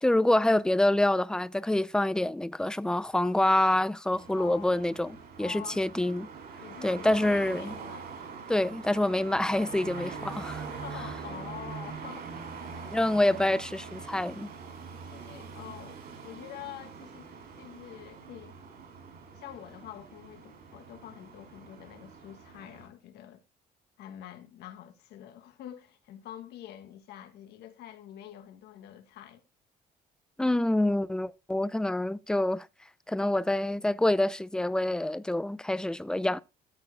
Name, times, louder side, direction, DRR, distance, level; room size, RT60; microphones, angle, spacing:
voice 1, 0.0-6.3 6.8-7.7 8.5-10.7 12.9-14.5 30.4-32.7 33.1-36.4, left 1 dB, 5° left, 0.5 m, -26 dB
sound 1, 4.1-22.9, right 5 dB, 60° right, 5.1 m, -43 dB
voice 2, 4.3-4.8 5.4-5.8 6.6-8.0 9.9-10.2 10.7-12.6 13.1-13.2 15.0-17.3 17.6-18.6 19.3-23.4 24.0-29.4, left 11 dB, 80° left, 1.7 m, -46 dB
13.0 x 4.6 x 4.8 m
cardioid pair, 110°, 17 cm